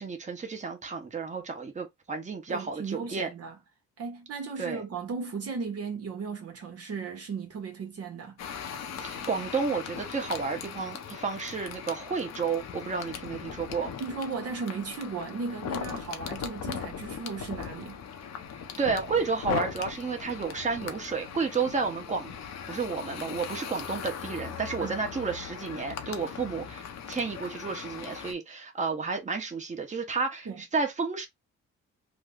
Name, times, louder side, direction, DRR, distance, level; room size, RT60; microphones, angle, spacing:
voice 1, 0.0-3.3 4.6-4.8 9.0-13.9 18.8-22.3 22.7-31.3, right 5 dB, 25° right, 1.1 m, -31 dB
voice 2, 2.5-3.6 4.0-8.4 14.0-18.0 24.8-25.0 30.5-30.6, right 4 dB, 50° right, 1.0 m, -36 dB
sound 1, 8.4-28.3, left 7 dB, 60° left, 0.8 m, -39 dB
3.1 x 2.1 x 3.7 m
cardioid pair, 90°, 30 cm